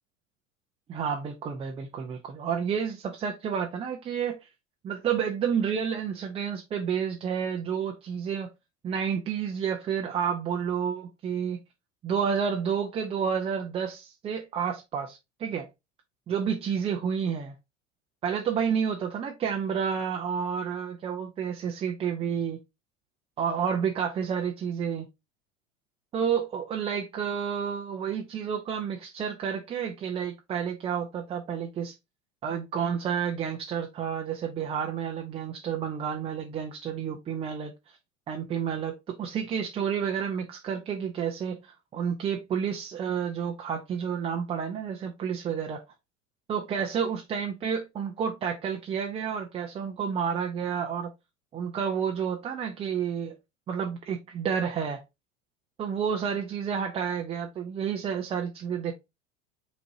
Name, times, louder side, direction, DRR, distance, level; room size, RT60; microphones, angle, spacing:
voice 1, 0.9-4.5 4.8-8.5 8.8-11.6 12.0-15.7 16.3-17.6 18.2-22.6 23.4-25.1 26.1-31.9 32.4-38.0 38.3-45.8 46.5-51.1 51.5-53.4 53.7-55.0 55.8-58.9, right 7 dB, 15° right, 0.4 m, -30 dB
5.8 x 2.6 x 2.8 m
figure-of-eight pair, 80°, 39 cm